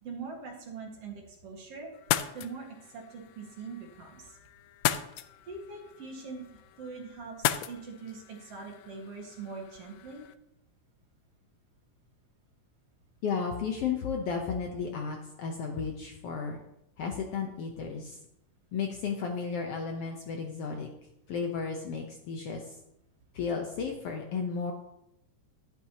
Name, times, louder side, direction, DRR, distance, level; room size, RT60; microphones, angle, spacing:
voice 1, 0.0-1.9 2.3-4.4 5.5-6.4 6.8-10.2, right 4 dB, 55° right, 0 dB, 2.5 m, -42 dB
sound 1, 1.9-10.3, left 12 dB, 85° left, 1.4 m, -36 dB
voice 2, 13.2-16.6 17.0-18.2 18.7-20.9 21.3-22.7 23.3-24.7, left 5 dB, 65° left, 2 dB, 1.6 m, -33 dB
11.5 x 10.5 x 2.9 m, 0.82 s
omnidirectional pair, 3.5 m